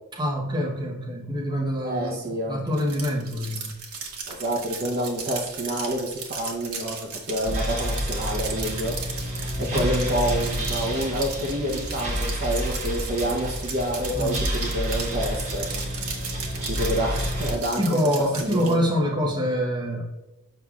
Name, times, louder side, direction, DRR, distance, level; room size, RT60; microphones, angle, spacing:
voice 1, 0.1-3.8 9.6-9.9 14.1-14.4 17.8-20.0, equal, 20° right, -2 dB, 1.1 m, -26 dB
voice 2, 1.8-2.6 4.3-9.3 9.6-15.9 16.5-18.0 18.4-18.8, equal, 45° right, 0 dB, 0.9 m, -28 dB
sound 1, 2.7-18.7, right 5 dB, 85° right, 1.2 m, -36 dB
sound 2, 7.4-17.5, equal, 65° right, 1.6 m, -29 dB
7.7 x 5.4 x 2.4 m, 0.96 s
head